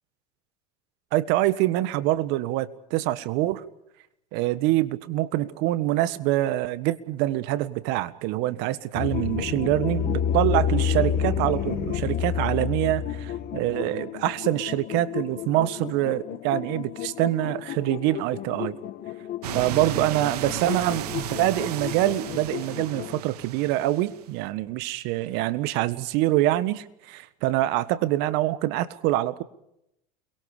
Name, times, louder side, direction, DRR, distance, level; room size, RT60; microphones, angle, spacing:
voice 1, 1.1-3.6 4.3-18.8 19.5-29.4, right 15 dB, 60° right, 15 dB, 1.6 m, -25 dB
sound 1, 8.9-23.2, left 9 dB, 50° left, 1.8 m, -30 dB
sound 2, 19.4-24.2, right 12 dB, 80° right, 1.8 m, -34 dB
29.5 x 23.0 x 5.1 m, 0.80 s
hypercardioid pair, 100°, 20 cm